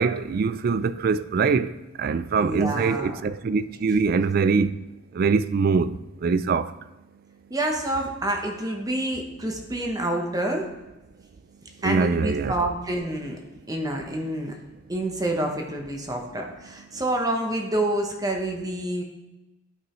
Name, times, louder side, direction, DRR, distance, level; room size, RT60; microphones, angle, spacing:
voice 1, 0.0-1.7 2.0-4.8 5.2-6.0 6.2-6.7 11.8-12.5, right 5 dB, 50° right, 0.3 m, -23 dB
voice 2, 2.4-3.2 7.5-10.7 11.8-13.4 13.7-14.5 14.9-19.0, right 1 dB, 20° right, 1.0 m, -28 dB
12.0 x 5.4 x 3.1 m
head